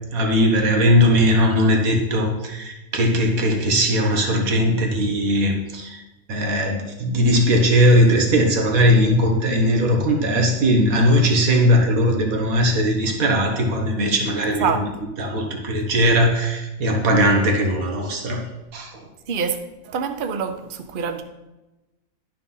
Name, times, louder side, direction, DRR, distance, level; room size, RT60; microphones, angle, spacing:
voice 1, 0.1-6.0 6.3-14.8 15.2-18.4 18.7-19.0, equal, 85° right, 1.7 m, -19 dB
voice 2, 19.3-19.6 19.8-21.2, right 6 dB, 45° right, 0.8 m, -25 dB
11.5 x 4.5 x 5.5 m
omnidirectional pair, 1.4 m